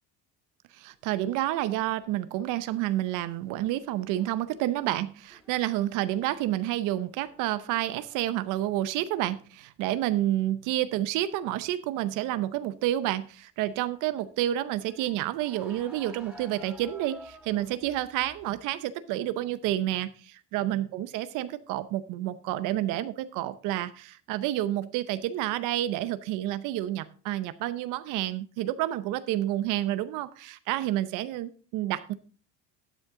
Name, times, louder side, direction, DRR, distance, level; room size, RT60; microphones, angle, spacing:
voice 1, 0.7-32.1, right 14 dB, 75° right, 14 dB, 0.8 m, -29 dB
sound 1, 0.9-3.3 3.6-8.7 8.9-9.4 9.8-10.3 12.1-12.4 12.8-12.9 13.9-18.8, equal, 5° right, 2.5 m, -54 dB
12.5 x 7.8 x 3.7 m, 0.40 s
cardioid pair, 125°, 32 cm